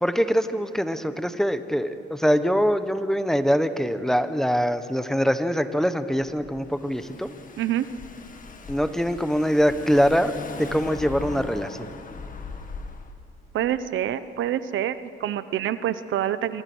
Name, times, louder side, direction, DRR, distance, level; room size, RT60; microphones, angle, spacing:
voice 1, 0.0-7.3 8.7-10.3 10.6-11.8, equal, ahead, 10 dB, 1.3 m, -23 dB
Car / Engine, 6.3-13.1, left 4 dB, 45° left, 2.1 m, -39 dB
voice 2, 13.5-16.6, right 11 dB, 75° right, 13 dB, 0.9 m, -26 dB
27.0 x 24.0 x 6.3 m, 2.8 s
cardioid pair, 90°, 20 cm